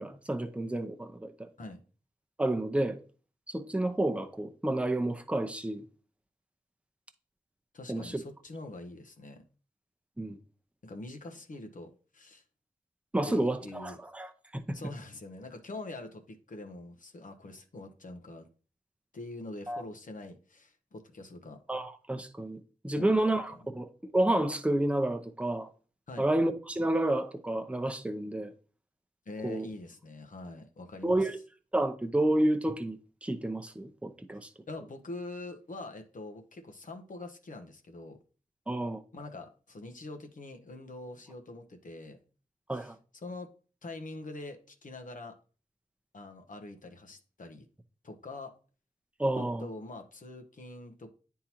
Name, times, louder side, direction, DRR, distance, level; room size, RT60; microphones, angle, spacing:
voice 1, 0.0-1.5 2.4-3.0 3.5-5.8 7.9-8.2 10.2-10.4 13.1-14.3 14.5-14.6 19.7-19.8 21.7-25.7 26.2-28.5 29.4-29.7 31.0-31.4 31.7-34.5 38.7-39.0 42.7-43.0 49.2-49.7, right 1 dB, 10° right, 0.7 m, -30 dB
voice 2, 7.7-9.4 10.8-12.4 13.2-14.0 14.7-18.5 19.1-21.6 22.9-23.3 26.1-26.3 29.3-31.3 34.7-38.2 39.1-42.2 42.7-42.9 43.2-43.5 43.8-45.4 46.1-47.7 48.0-48.5 49.3-51.1, left 2 dB, 70° left, 1.0 m, -44 dB
9.5 x 3.7 x 2.9 m
wide cardioid pair, 70°, 14 cm